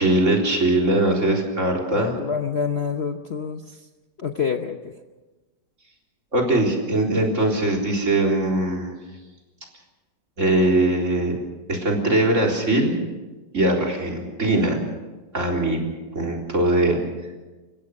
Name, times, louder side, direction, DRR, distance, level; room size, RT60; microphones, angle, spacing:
voice 1, 0.0-2.2 6.3-8.9 10.4-11.4 11.7-13.0 13.5-14.8 15.3-15.8 16.1-17.0, right 1 dB, 45° right, 0 dB, 4.2 m, -21 dB
voice 2, 1.9-3.9 4.2-4.9, left 6 dB, 45° left, 6 dB, 1.0 m, -27 dB
29.5 x 16.0 x 6.6 m, 1.2 s
omnidirectional pair, 1.8 m